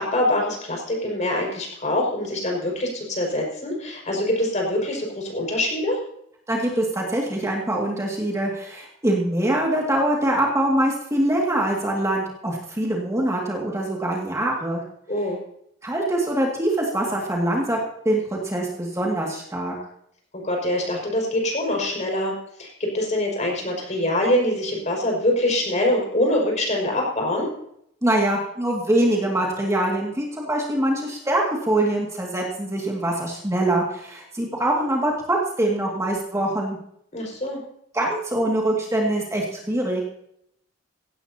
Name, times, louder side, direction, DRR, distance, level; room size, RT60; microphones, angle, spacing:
voice 1, 0.0-6.0 15.1-15.4 20.3-22.3 22.6-27.5 37.1-37.6, left 1 dB, 40° left, -1 dB, 5.7 m, -24 dB
voice 2, 6.5-14.8 15.8-17.8 18.0-19.7 28.0-36.8 37.9-40.2, right 1 dB, 15° right, -2 dB, 2.3 m, -24 dB
17.0 x 16.5 x 2.9 m, 0.73 s
head